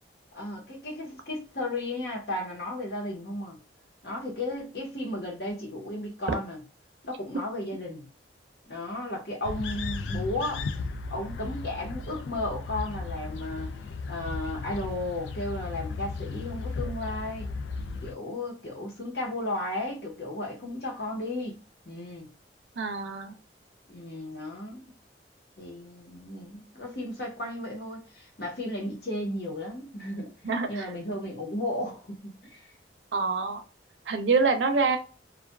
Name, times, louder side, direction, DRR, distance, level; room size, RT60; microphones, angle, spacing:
voice 1, 0.3-3.6 4.0-6.6 7.0-8.1 8.7-10.6 11.1-13.7 14.1-17.5 18.0-21.6 21.8-22.3 23.9-24.9 25.6-30.3 30.7-32.7, left 1 dB, 60° left, 1.1 m, -34 dB
sound 1, 9.4-18.1, left 3 dB, 85° left, 0.4 m, -35 dB
voice 2, 22.8-23.4 30.4-30.9 33.1-33.6 34.1-35.0, right 4 dB, 85° right, 0.6 m, -26 dB
2.5 x 2.4 x 2.2 m
head